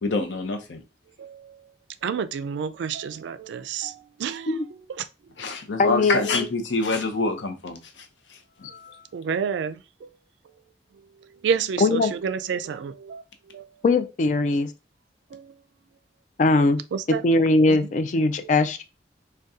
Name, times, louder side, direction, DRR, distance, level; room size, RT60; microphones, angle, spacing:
voice 1, 0.0-0.8 5.4-9.0, left 3 dB, 85° left, 0.6 m, -27 dB
voice 2, 1.2-1.7 2.0-5.1 9.1-10.1 11.2-13.7 15.3-15.6 16.9-17.2 17.7-17.9 18.4-18.5, right 6 dB, 75° right, 0.3 m, -30 dB
voice 3, 5.8-6.2 11.8-12.1 13.8-14.7 16.4-16.8 17.1-18.8, left 2 dB, 40° left, 0.3 m, -20 dB
2.6 x 2.2 x 3.5 m
head